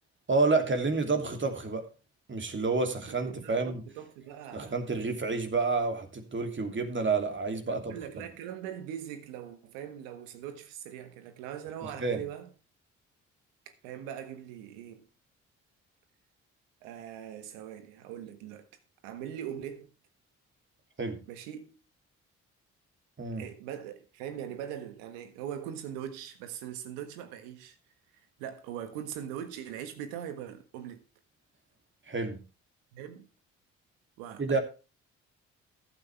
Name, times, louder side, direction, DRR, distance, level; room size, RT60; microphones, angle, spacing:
voice 1, 0.3-1.9 2.3-3.8 4.5-7.9 11.8-12.2 21.0-21.2 23.2-23.4 32.1-32.4 34.4-34.6, right 3 dB, 35° right, 2.8 m, -29 dB
voice 2, 3.1-4.7 7.7-12.5 13.8-15.1 16.8-18.7 19.0-19.9 21.3-21.8 23.4-27.8 28.4-31.0 32.9-33.3 34.2-34.6, right 10 dB, 85° right, 1.5 m, -41 dB
14.5 x 8.8 x 3.4 m
hypercardioid pair, 50°, 34 cm